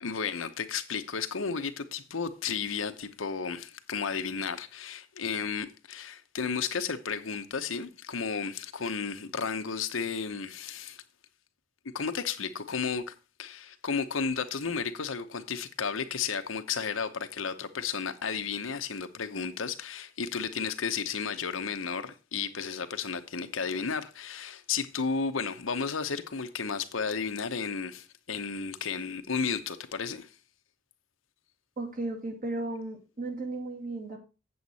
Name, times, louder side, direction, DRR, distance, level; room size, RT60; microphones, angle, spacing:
voice 1, 0.0-11.0 11.9-13.1 13.4-30.3, left 5 dB, 85° left, 0.9 m, -33 dB
voice 2, 31.8-34.2, right 2 dB, 45° right, 2.6 m, -35 dB
8.0 x 7.8 x 4.1 m
head